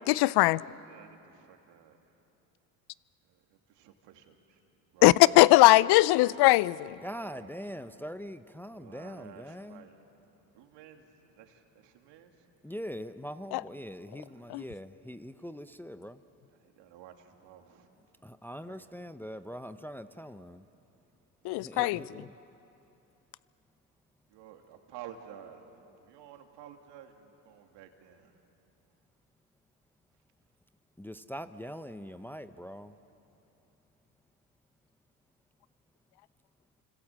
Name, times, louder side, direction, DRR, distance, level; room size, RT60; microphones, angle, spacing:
voice 1, 0.1-0.6 5.0-7.0 13.5-13.6 14.5-14.6 21.4-22.0, left 19 dB, 60° left, 21 dB, 0.6 m, -20 dB
voice 2, 0.8-2.0 3.2-4.6 4.9-5.1 7.0-7.6 8.7-9.9 10.5-12.5 14.3-14.5 16.5-17.9 18.6-18.9 21.4-22.1 24.3-28.3, right 9 dB, 65° right, 4 dB, 2.9 m, -52 dB
voice 3, 7.0-9.9 12.6-16.2 18.2-20.6 21.6-22.3 31.0-32.9, equal, 5° left, 11 dB, 0.8 m, -42 dB
30.0 x 26.0 x 7.5 m, 2.9 s
hypercardioid pair, 75°, 45 cm